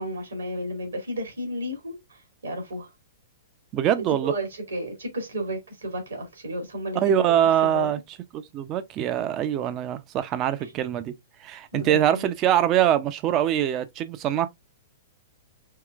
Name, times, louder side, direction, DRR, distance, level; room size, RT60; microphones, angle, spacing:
voice 1, 0.0-2.9 4.1-7.9 10.6-10.7 11.7-12.3, equal, 80° right, 2.2 m, -33 dB
voice 2, 3.7-4.3 6.9-8.0 8.3-11.1 11.4-14.5, right 11 dB, 35° right, 0.6 m, -23 dB
4.7 x 3.1 x 2.4 m
figure-of-eight pair, 110°, 0 cm